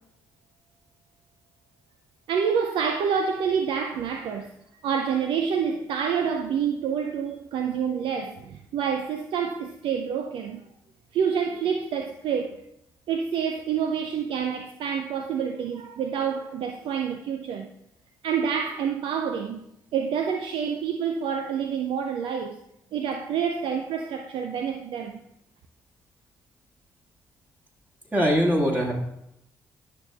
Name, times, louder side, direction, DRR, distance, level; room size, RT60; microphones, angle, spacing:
voice 1, 2.3-4.5 4.8-10.6 11.1-12.6 13.1-17.7 18.2-19.6 19.9-22.6 22.9-25.2, right 7 dB, 60° right, 0.5 m, -27 dB
voice 2, 28.1-28.9, equal, 20° right, 1.8 m, -21 dB
10.0 x 6.6 x 2.3 m
hypercardioid pair, 40°, 10 cm